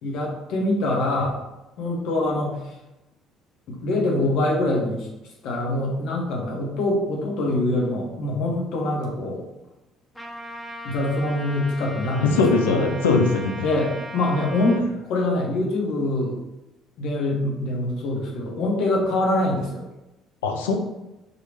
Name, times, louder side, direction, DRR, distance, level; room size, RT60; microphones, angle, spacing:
voice 1, 0.0-1.4 1.8-2.7 3.7-5.1 5.4-9.4 10.8-12.9 13.6-14.8 15.1-16.4 17.0-19.8, left 1 dB, 65° left, -1 dB, 1.3 m, -24 dB
Trumpet, 10.1-14.8, equal, 15° left, 1.5 m, -37 dB
voice 2, 12.2-13.7 20.4-20.8, left 4 dB, 85° left, 4 dB, 0.5 m, -20 dB
4.6 x 3.3 x 3.2 m, 0.96 s
hypercardioid pair, 60°, 0 cm